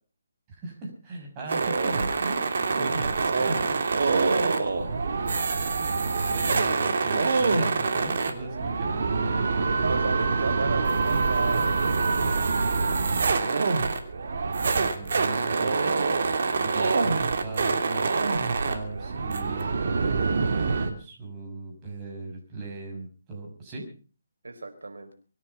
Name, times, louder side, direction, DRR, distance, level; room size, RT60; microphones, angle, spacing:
voice 1, 0.6-2.4 2.7-4.0 6.3-9.7 14.6-16.0 16.6-18.1 18.7-23.9, right 2 dB, 20° right, 0 dB, 6.5 m, -37 dB
sound 1, 1.5-20.9, right 4 dB, 60° right, 3.0 m, -25 dB
voice 2, 4.0-4.7 9.8-12.6 16.8-17.2 24.4-25.1, right 3 dB, 85° right, 7 dB, 5.0 m, -34 dB
24.5 x 9.9 x 5.7 m, 0.39 s
hypercardioid pair, 160°, 0 cm